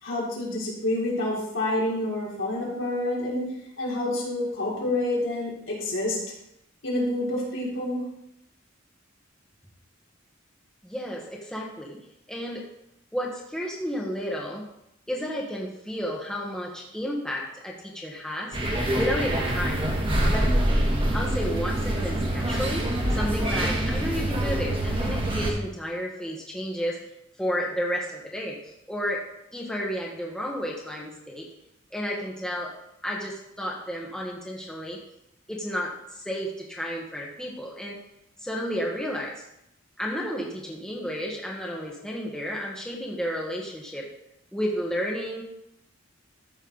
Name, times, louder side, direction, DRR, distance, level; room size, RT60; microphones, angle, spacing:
voice 1, 0.0-3.5 3.8-6.2 6.8-8.0, left 1 dB, 70° left, -5 dB, 3.7 m, -28 dB
voice 2, 10.8-12.0 12.3-12.6 13.1-14.7 15.1-18.6 18.9-19.9 20.3-20.5 21.1-27.0 27.4-29.2 29.5-31.5 31.9-32.7 33.0-35.0 35.5-38.0 38.4-39.4 40.0-44.1 44.5-45.4, equal, 5° left, -2 dB, 1.3 m, -32 dB
sound 1, 18.5-25.5, right 1 dB, 25° right, 1.6 m, -25 dB
13.5 x 6.5 x 4.0 m, 0.82 s
head